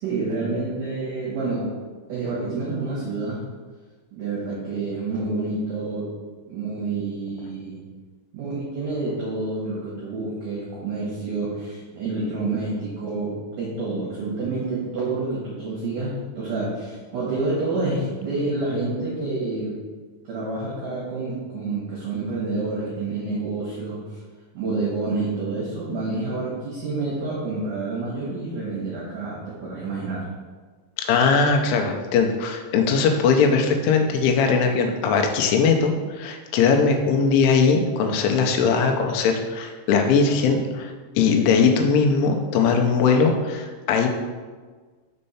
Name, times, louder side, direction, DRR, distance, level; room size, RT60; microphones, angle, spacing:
voice 1, 0.0-1.7 2.1-3.4 4.1-6.1 6.5-7.8 8.3-19.8 20.2-24.2 24.5-30.3, right 3 dB, 65° right, -6 dB, 2.2 m, -28 dB
voice 2, 31.0-44.1, left 5 dB, 85° left, 3 dB, 3.2 m, -20 dB
6.6 x 4.3 x 5.6 m, 1.4 s
omnidirectional pair, 5.4 m